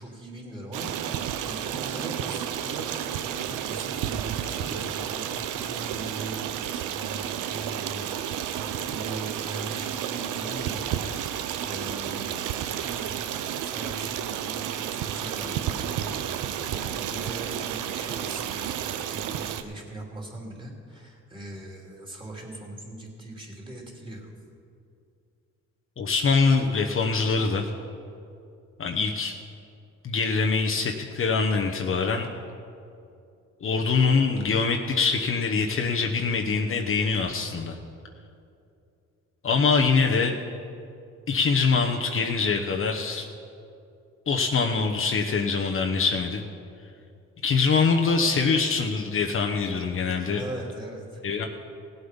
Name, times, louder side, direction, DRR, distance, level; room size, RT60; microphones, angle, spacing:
voice 1, 0.0-8.2 8.5-16.2 16.7-24.3 50.3-51.2, right 1 dB, 15° right, -1 dB, 3.0 m, -40 dB
Stream, 0.7-19.6, right 10 dB, 90° right, 0.7 m, -31 dB
voice 2, 26.0-27.7 28.8-29.4 30.0-32.3 33.6-37.8 39.4-40.4 41.3-43.3 44.3-46.4 47.4-50.4 51.2-51.5, left 4 dB, 45° left, 2 dB, 1.0 m, -24 dB
17.0 x 8.0 x 5.4 m, 2.5 s
cardioid pair, 90°, 30 cm